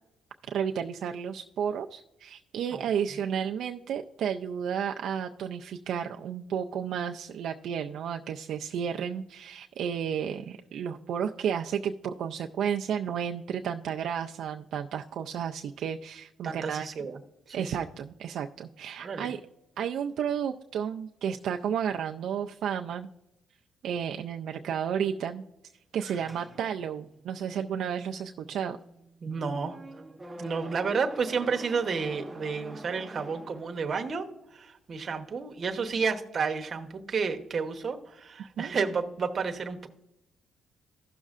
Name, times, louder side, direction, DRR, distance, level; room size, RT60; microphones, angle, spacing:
voice 1, 0.5-16.9 17.5-19.4 19.8-23.1 23.8-25.4 25.9-28.8 38.6-38.7, right 8 dB, 70° right, 3 dB, 0.4 m, -32 dB
voice 2, 16.4-17.2 17.5-17.8 19.0-19.3 29.2-29.8 30.4-34.3 34.5-39.9, right 5 dB, 40° right, 5 dB, 0.9 m, -31 dB
sound 1, 26.1-34.1, right 2 dB, 15° right, 0.8 m, -46 dB
15.5 x 6.3 x 2.5 m, 0.89 s
cardioid pair, 105°, 0 cm